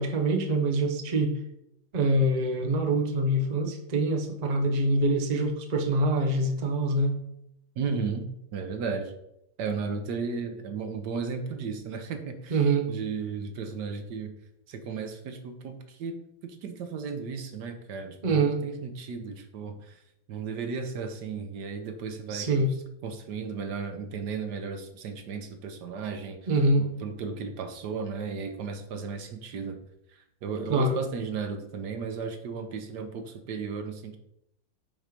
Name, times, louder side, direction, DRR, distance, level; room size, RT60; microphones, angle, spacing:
voice 1, 0.0-1.4 1.9-7.2 12.5-12.9 18.2-18.6 22.3-22.7 26.5-26.9 30.7-31.0, right 2 dB, 85° right, 3 dB, 0.3 m, -25 dB
voice 2, 7.8-9.1 9.6-14.3 14.7-16.2 16.4-20.0 20.3-22.5 23.0-26.4 26.8-29.8 30.1-34.2, right 5 dB, 65° right, 7 dB, 1.2 m, -35 dB
7.4 x 4.7 x 5.2 m, 0.80 s
omnidirectional pair, 2.4 m